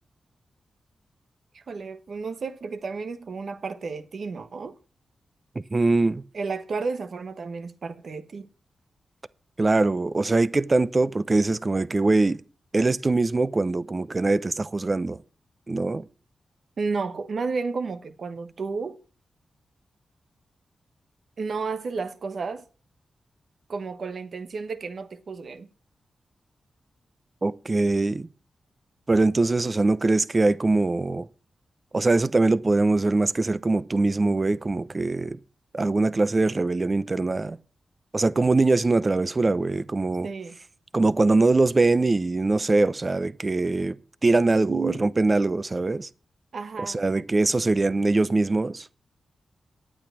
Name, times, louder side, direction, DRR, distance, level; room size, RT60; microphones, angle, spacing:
voice 1, 1.5-4.7 6.3-8.5 16.8-19.0 21.4-22.6 23.7-25.7 40.2-40.6 44.6-45.1 46.5-47.0, right 4 dB, 65° right, 1.2 m, -32 dB
voice 2, 5.7-6.2 9.6-12.4 12.7-15.2 15.7-16.0 27.4-28.3 29.1-31.3 31.9-35.4 35.7-37.6 38.1-40.3 40.9-44.0 44.2-46.1 46.8-48.9, right 3 dB, 35° right, 0.7 m, -22 dB
10.5 x 8.8 x 6.2 m
cardioid pair, 50°, 0 cm